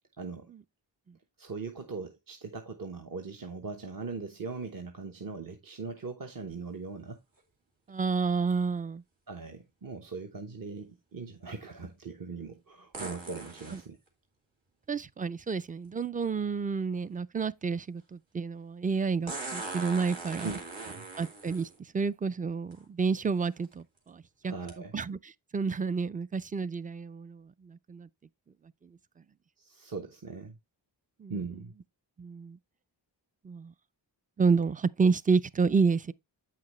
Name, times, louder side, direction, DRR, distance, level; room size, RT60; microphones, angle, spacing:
voice 1, 0.2-0.5 1.4-7.2 9.3-14.0 20.4-20.6 20.9-21.1 24.4-24.9 29.6-30.5 31.3-31.7, right 4 dB, 50° right, 1.0 m, -40 dB
sound 1, 6.5-6.6 12.9-13.8 15.9-16.0 19.3-21.8 22.7-22.8 23.5-23.7 24.7-24.8, right 3 dB, 85° right, 2.4 m, -40 dB
voice 2, 7.9-9.0 14.9-20.5 21.2-24.5 24.9-28.1 31.2-31.3 32.2-32.6 33.4-33.7 34.4-36.1, right 5 dB, 20° right, 0.3 m, -30 dB
8.2 x 5.9 x 3.1 m
wide cardioid pair, 65°, 44 cm